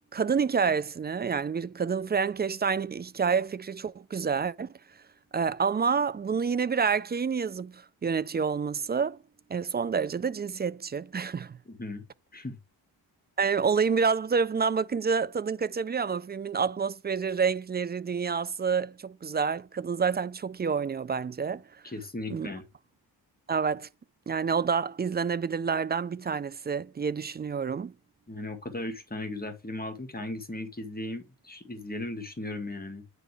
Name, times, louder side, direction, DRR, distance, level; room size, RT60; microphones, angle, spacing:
voice 1, 0.1-4.7 5.3-9.2 9.5-11.6 13.4-21.6 22.3-22.5 23.5-23.9 24.3-27.9, right 6 dB, 25° right, 0.4 m, -28 dB
voice 2, 11.7-12.0 12.3-12.6 21.8-22.6 28.3-33.0, left 2 dB, 20° left, 2.0 m, -37 dB
9.1 x 3.8 x 3.4 m
cardioid pair, 80°, 44 cm